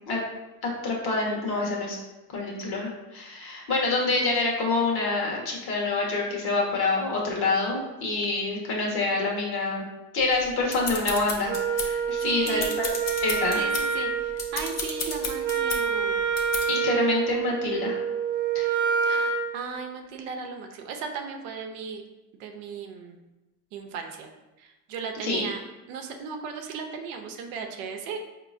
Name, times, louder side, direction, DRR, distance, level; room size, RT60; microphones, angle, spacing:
voice 1, 0.8-2.0 2.3-9.8 10.1-12.9 13.2-13.6 16.7-18.0 18.5-18.7 25.2-25.4, left 3 dB, 50° left, -2 dB, 1.4 m, -27 dB
sound 1, 10.3-12.1 12.4-13.9 14.3-15.8 16.4-16.7, left 4 dB, 35° left, 0.7 m, -33 dB
Wind instrument woodwind instrument, 11.5-19.4, right 6 dB, 40° right, 0.9 m, -27 dB
voice 2, 12.1-12.8 13.6-16.2 19.0-22.0 22.4-23.2 23.7-24.3 24.6-25.6 25.9-28.3, right 5 dB, 70° right, 4 dB, 0.7 m, -36 dB
4.6 x 2.9 x 2.5 m, 1.0 s
supercardioid pair, 90°, 49 cm